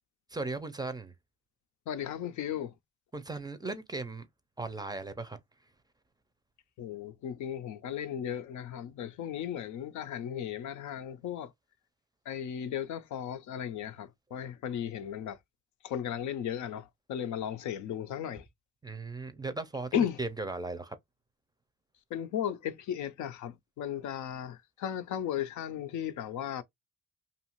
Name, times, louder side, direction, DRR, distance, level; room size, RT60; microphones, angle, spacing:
voice 1, 0.3-1.1 3.1-4.3 4.6-5.4 18.8-21.0, right 3 dB, 15° right, 0.5 m, -37 dB
voice 2, 1.9-2.7 6.8-11.5 12.3-15.4 15.8-18.4 19.9-20.2 22.1-26.6, left 9 dB, 75° left, 0.6 m, -35 dB
2.7 x 2.4 x 3.0 m
cardioid pair, 90°, 30 cm